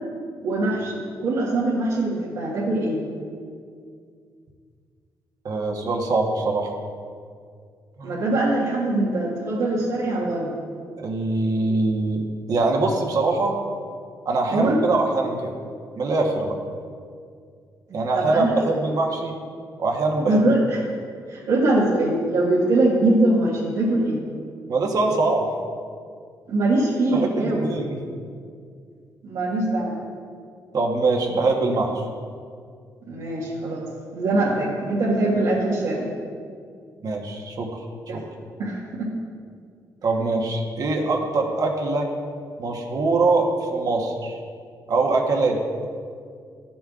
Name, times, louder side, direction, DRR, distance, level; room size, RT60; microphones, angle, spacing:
voice 1, 0.4-3.0 8.0-10.5 14.5-14.8 18.1-18.7 20.3-20.8 21.3-24.2 26.5-27.7 29.2-30.0 33.1-33.9 34.1-36.1 38.1-38.2 38.6-39.1, right 2 dB, 85° right, -9 dB, 1.7 m, -22 dB
voice 2, 5.4-6.7 8.0-8.2 11.0-13.6 14.2-15.5 16.0-16.6 17.9-19.3 19.8-20.5 24.7-25.5 27.1-28.0 30.7-32.0 37.0-37.8 38.1-38.2 40.0-42.1 42.6-44.4 44.9-45.6, right 3 dB, 60° right, 2 dB, 1.2 m, -23 dB
12.0 x 7.1 x 2.5 m, 2.2 s
cardioid pair, 90°, 7 cm